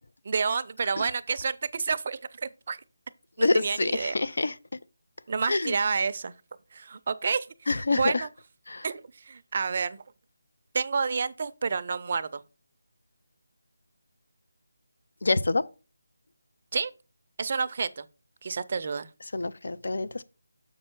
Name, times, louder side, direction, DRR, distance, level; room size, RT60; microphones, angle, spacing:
voice 1, 0.3-2.8 3.4-4.1 5.3-6.3 6.7-7.5 7.9-8.3 8.8-10.0 10.7-12.4 16.7-16.9 17.4-18.0 18.4-19.1, right 5 dB, 40° right, 0.5 m, -29 dB
voice 2, 3.4-4.5 5.5-5.8 7.7-8.3 8.7-8.8 15.2-15.6 19.3-20.2, left 3 dB, 70° left, 0.6 m, -26 dB
7.2 x 5.5 x 4.5 m
figure-of-eight pair, 170°, 0 cm